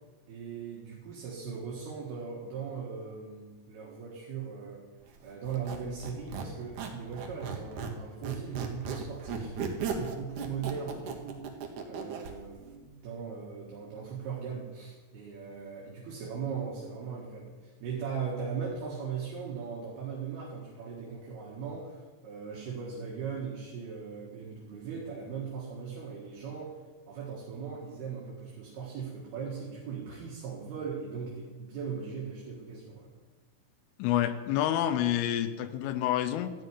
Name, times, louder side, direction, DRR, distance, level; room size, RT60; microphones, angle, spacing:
voice 1, 0.3-4.8 5.2-9.5 9.9-11.5 11.8-26.7 27.1-33.1, right 6 dB, 60° right, -3 dB, 3.3 m, -39 dB
Squeak, 5.5-12.3, right 6 dB, 85° right, 1.7 m, -36 dB
voice 2, 34.0-36.5, left 11 dB, 85° left, 10 dB, 3.3 m, -28 dB
14.5 x 6.6 x 9.5 m, 1.3 s
omnidirectional pair, 5.7 m